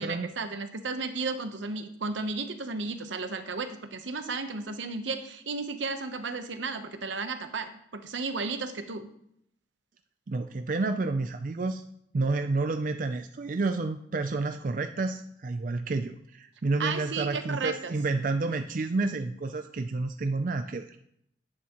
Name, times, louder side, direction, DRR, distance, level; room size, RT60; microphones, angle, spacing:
voice 1, 0.0-9.1 16.8-18.0, right 4 dB, 80° right, 8 dB, 0.9 m, -34 dB
voice 2, 10.3-11.8 12.1-21.0, right 3 dB, 45° right, 7 dB, 0.4 m, -30 dB
10.5 x 8.7 x 3.0 m, 0.73 s
head